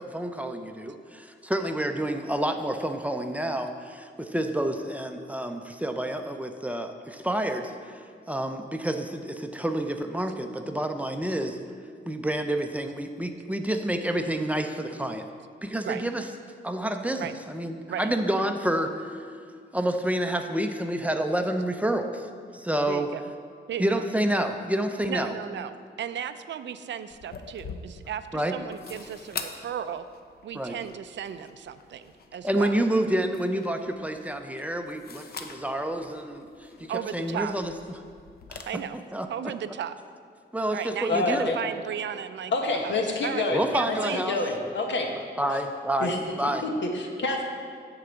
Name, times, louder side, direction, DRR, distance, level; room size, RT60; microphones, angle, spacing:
voice 1, 0.0-11.6 12.1-15.3 15.6-16.3 16.6-19.1 19.7-22.3 22.5-23.1 23.8-25.3 28.3-28.5 30.5-30.8 32.4-38.0 38.5-38.7 39.1-39.3 40.5-41.5 43.5-44.4 45.4-46.1 46.4-46.6, right 1 dB, 10° right, 5 dB, 0.5 m, -29 dB
voice 2, 22.9-23.2 23.7-24.0 25.1-30.0 30.4-32.7 36.9-37.5 38.7-39.0 39.3-40.0 40.7-43.0 43.2-44.3, right 9 dB, 75° right, 11 dB, 0.4 m, -35 dB
sound 1, 27.1-38.6, left 5 dB, 55° left, 0.6 m, -45 dB
voice 3, 41.1-41.6 42.5-44.0 44.3-45.1 46.0-47.4, left 2 dB, 75° left, 2 dB, 1.1 m, -28 dB
9.3 x 3.9 x 6.9 m, 2.2 s
wide cardioid pair, 120°, 19 cm